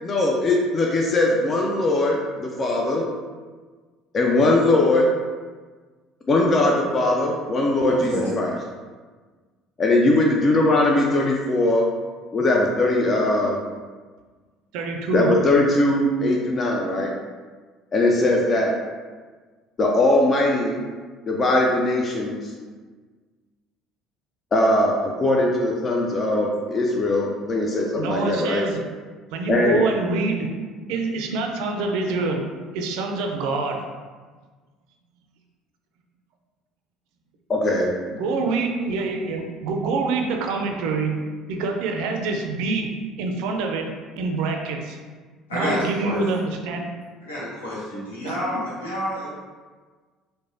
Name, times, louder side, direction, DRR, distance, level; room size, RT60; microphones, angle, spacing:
voice 1, 0.0-3.1 4.1-5.1 6.3-8.5 9.8-11.9 12.3-13.6 15.1-17.1 17.9-18.7 19.8-20.8 21.3-22.5 24.5-28.6 29.5-29.8 37.5-37.9, left 2 dB, 40° left, -1 dB, 0.4 m, -20 dB
voice 2, 7.9-8.3 45.5-46.2 47.2-49.3, equal, 90° left, -7 dB, 0.8 m, -29 dB
voice 3, 14.7-15.3 28.0-28.8 29.3-30.5 30.9-32.4 32.7-33.8 38.2-41.1 41.5-42.9 43.2-45.0 45.5-46.9 48.2-48.6, right 3 dB, 70° right, 3 dB, 0.3 m, -26 dB
3.0 x 2.1 x 2.6 m, 1.4 s
hypercardioid pair, 65°, 0 cm